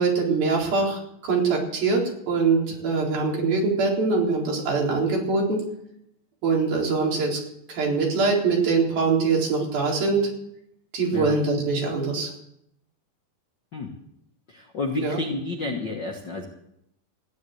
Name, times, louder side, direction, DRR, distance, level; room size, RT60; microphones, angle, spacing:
voice 1, 0.0-5.6 6.4-7.4 7.7-10.3 10.9-12.3 15.0-15.2, right 4 dB, 80° right, -2 dB, 5.9 m, -23 dB
voice 2, 14.5-16.4, left 3 dB, 60° left, 2 dB, 1.1 m, -30 dB
15.0 x 11.0 x 7.9 m, 0.77 s
omnidirectional pair, 4.2 m